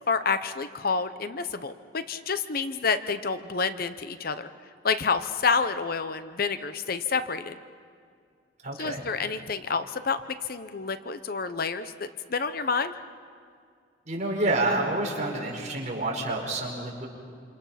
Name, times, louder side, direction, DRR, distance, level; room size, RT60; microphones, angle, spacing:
voice 1, 0.1-4.5 4.8-7.5 8.8-10.2 10.5-12.9, left 5 dB, 50° left, 11 dB, 0.8 m, -28 dB
voice 2, 8.6-9.0 14.1-17.1, right 2 dB, 40° right, -1 dB, 5.0 m, -28 dB
27.5 x 26.5 x 5.8 m, 2.2 s
head